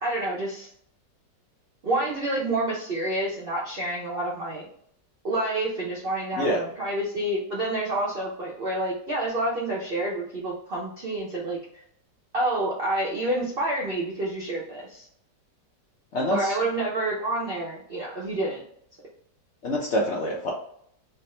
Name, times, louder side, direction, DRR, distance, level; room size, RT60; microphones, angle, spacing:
voice 1, 0.0-0.7 1.8-4.7 5.2-11.6 12.3-15.1 16.3-18.6, right 1 dB, 60° right, -5 dB, 0.6 m, -28 dB
voice 2, 16.1-16.6 19.6-20.5, equal, 65° left, -3 dB, 0.7 m, -26 dB
3.4 x 2.0 x 4.2 m, 0.66 s
omnidirectional pair, 1.9 m